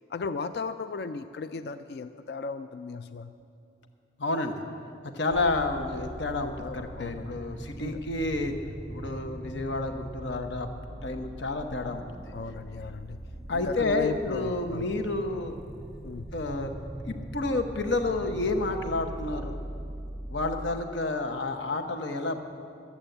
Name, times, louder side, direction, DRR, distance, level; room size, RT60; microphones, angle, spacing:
voice 1, 0.1-3.3 6.6-7.4 7.8-8.0 12.3-13.2 13.5-14.9 16.0-16.3, left 4 dB, 60° left, 11 dB, 0.4 m, -36 dB
voice 2, 4.2-4.6 5.1-8.5 8.9-10.7 11.0-12.0 13.5-15.6 16.3-16.7 17.0-19.6 20.3-22.4, left 2 dB, 85° left, 6 dB, 0.9 m, -30 dB
sound 1, 5.3-20.8, right 1 dB, 5° right, 0.4 m, -41 dB
12.5 x 8.6 x 7.8 m, 2.5 s
head